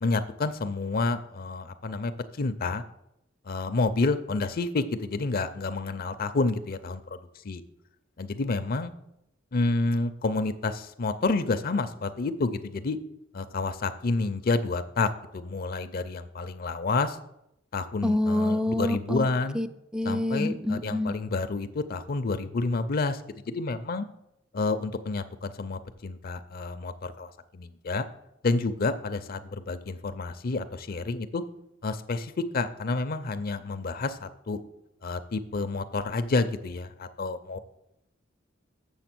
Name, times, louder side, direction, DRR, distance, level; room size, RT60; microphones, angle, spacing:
voice 1, 0.0-2.1 2.4-2.8 3.5-7.6 8.2-8.9 9.5-13.0 13.3-17.2 17.7-19.6 20.0-23.2 23.5-24.1 24.5-28.1 28.4-31.4 31.8-34.6 35.0-37.6, left 3 dB, 50° left, 11 dB, 0.5 m, -29 dB
voice 2, 18.0-19.3 19.5-19.7 19.9-21.1, left 1 dB, 5° right, 11 dB, 0.3 m, -27 dB
7.2 x 7.1 x 6.0 m, 0.82 s
head